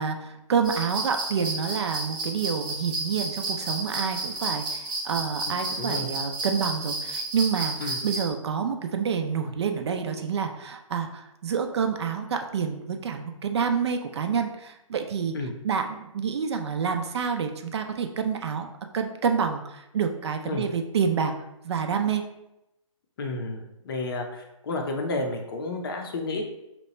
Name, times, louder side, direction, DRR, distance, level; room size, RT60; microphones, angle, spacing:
voice 1, 0.0-15.3 15.6-18.7 18.9-21.3 21.6-22.2, right 6 dB, 55° right, 5 dB, 0.4 m, -28 dB
sound 1, 0.6-8.3, right 2 dB, 40° right, 0.8 m, -32 dB
voice 2, 5.5-6.1 7.8-8.0 15.3-15.6 20.4-20.7 23.2-26.4, left 2 dB, 45° left, 3 dB, 0.6 m, -31 dB
2.9 x 2.2 x 4.1 m, 0.88 s
hypercardioid pair, 150°, 17 cm